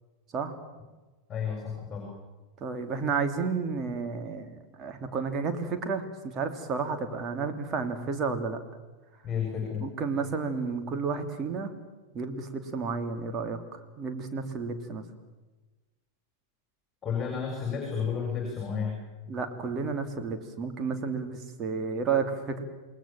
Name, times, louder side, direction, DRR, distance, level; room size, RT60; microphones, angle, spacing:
voice 1, 1.3-2.1 9.2-9.9 17.0-19.0, left 6 dB, 20° left, 1 dB, 7.1 m, -31 dB
voice 2, 2.6-8.6 9.8-11.7 12.1-15.0 19.3-22.6, right 5 dB, 30° right, 6 dB, 3.0 m, -31 dB
28.5 x 20.0 x 7.6 m, 1.2 s
figure-of-eight pair, 90°, 0 cm